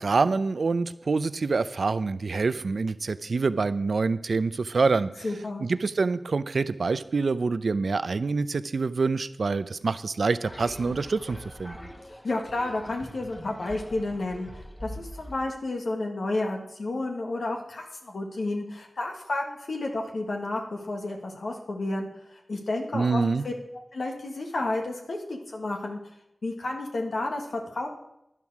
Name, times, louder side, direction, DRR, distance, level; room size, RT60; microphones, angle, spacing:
voice 1, 0.0-5.1 5.6-11.8 22.9-23.4, right 4 dB, 75° right, 14 dB, 0.5 m, -26 dB
voice 2, 5.2-5.7 12.1-14.5 14.8-23.5 23.9-26.0 26.4-27.9, left 2 dB, 80° left, 1 dB, 1.6 m, -31 dB
sound 1, 10.4-15.5, equal, 20° left, 1.4 m, -43 dB
11.0 x 11.0 x 4.8 m, 0.82 s
cardioid pair, 50°, 0 cm